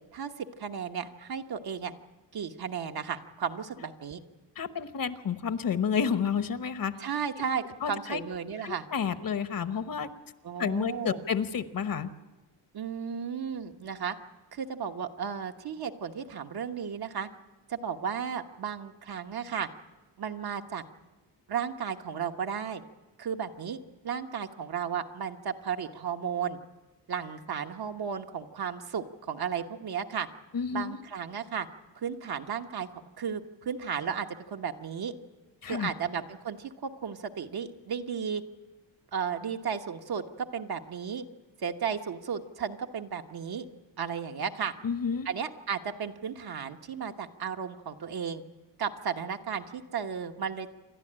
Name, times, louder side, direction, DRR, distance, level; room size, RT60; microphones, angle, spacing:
voice 1, 0.1-1.9 2.3-4.2 7.0-8.8 10.4-11.2 12.7-14.2 14.5-17.3 17.7-19.7 20.2-20.8 21.5-22.8 23.2-26.6 27.1-30.3 30.7-31.7 31.9-32.9 33.2-35.1 35.6-38.4 39.1-41.2 41.6-43.6 44.0-44.7 45.2-48.4 48.8-50.7, right 7 dB, 60° right, 5 dB, 1.2 m, -34 dB
voice 2, 4.6-7.0 7.8-8.2 8.6-10.1 10.6-12.1 30.5-31.0 35.6-35.9 44.8-45.3, left 6 dB, 50° left, 11 dB, 1.1 m, -30 dB
28.0 x 12.0 x 8.8 m, 1.2 s
wide cardioid pair, 125°, 43 cm